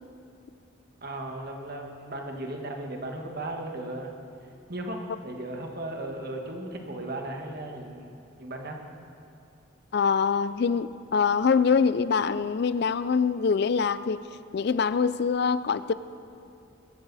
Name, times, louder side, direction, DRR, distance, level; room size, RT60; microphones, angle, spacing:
voice 1, 1.0-4.1 4.7-8.1 8.4-8.8, right 1 dB, 50° right, 1.5 m, -36 dB
voice 2, 9.9-14.2 14.5-15.9, left 5 dB, 55° left, 0.4 m, -24 dB
22.0 x 12.5 x 4.1 m
head